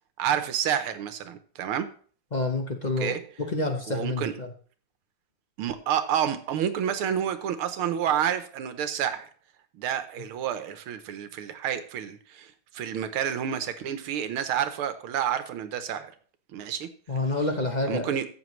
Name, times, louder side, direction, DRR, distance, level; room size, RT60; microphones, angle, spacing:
voice 1, 0.2-1.9 3.0-3.2 3.9-4.3 5.6-9.3 9.8-16.1 16.5-16.9 17.9-18.3, right 9 dB, 80° right, 1.8 m, -29 dB
voice 2, 2.3-3.2 3.5-4.5 17.1-18.1, left 2 dB, 40° left, 0.6 m, -28 dB
14.0 x 7.9 x 3.2 m
omnidirectional pair, 2.3 m